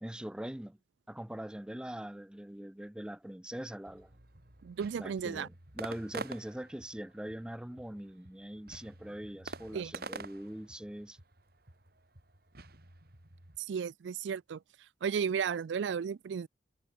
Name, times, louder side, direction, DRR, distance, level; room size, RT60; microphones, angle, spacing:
voice 1, 0.0-0.8 1.1-4.1 5.0-11.2, right 1 dB, 5° right, 0.4 m, -42 dB
sound 1, 3.8-13.6, right 3 dB, 60° right, 3.4 m, -48 dB
voice 2, 4.6-5.5 9.7-9.9 13.7-14.6 15.0-16.5, right 7 dB, 75° right, 0.4 m, -34 dB
head